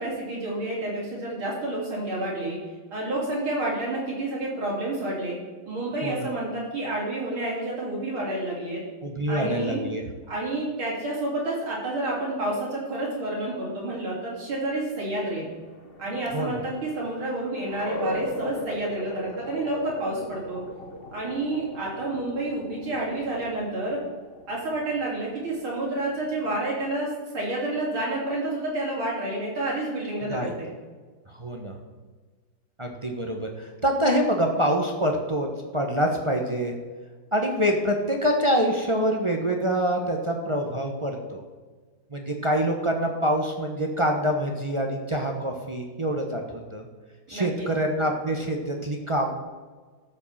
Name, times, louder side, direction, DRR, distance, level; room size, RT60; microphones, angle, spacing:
voice 1, 0.0-2.6 2.9-5.4 5.7-8.8 9.3-9.8 10.3-15.5 16.0-20.6 21.1-24.0 24.5-30.7 47.3-47.7, right 2 dB, 75° right, -5 dB, 4.3 m, -29 dB
voice 2, 9.0-10.0 16.3-16.6 30.2-30.5 31.4-31.7 32.8-35.5 35.7-36.7 37.3-41.4 42.1-46.9 47.3-49.3, equal, 30° right, 2 dB, 0.6 m, -26 dB
sound 1, 15.2-26.6, left 1 dB, 35° left, 1.1 m, -39 dB
13.0 x 5.1 x 7.2 m, 1.4 s
omnidirectional pair, 2.3 m